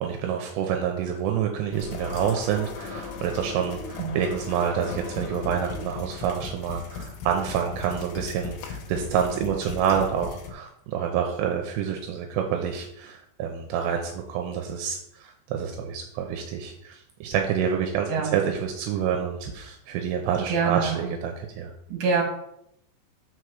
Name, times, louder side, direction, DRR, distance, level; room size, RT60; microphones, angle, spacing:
voice 1, 0.0-21.7, right 8 dB, 80° right, 3 dB, 2.8 m, -28 dB
sound 1, 1.7-10.5, left 4 dB, 75° left, 3.2 m, -37 dB
voice 2, 20.5-21.1 21.9-22.2, right 5 dB, 50° right, -1 dB, 3.1 m, -25 dB
6.7 x 4.6 x 6.4 m, 0.77 s
omnidirectional pair, 5.2 m